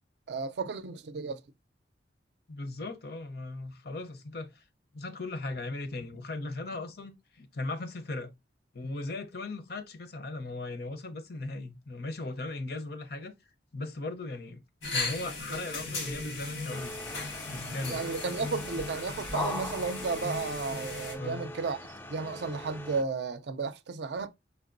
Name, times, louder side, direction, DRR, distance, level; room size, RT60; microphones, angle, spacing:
voice 1, 0.3-1.4 17.9-21.8 22.1-24.3, right 4 dB, 65° right, 0.4 m, -33 dB
voice 2, 2.5-4.6 4.9-8.3 8.7-13.3 13.7-14.6 14.9-16.9 17.5-18.0 21.2-21.5, left 2 dB, 55° left, 0.6 m, -38 dB
sound 1, 14.8-21.2, left 3 dB, 90° left, 1.5 m, -37 dB
sound 2, 16.7-23.0, left 1 dB, 10° left, 0.4 m, -40 dB
5.1 x 3.4 x 2.5 m
head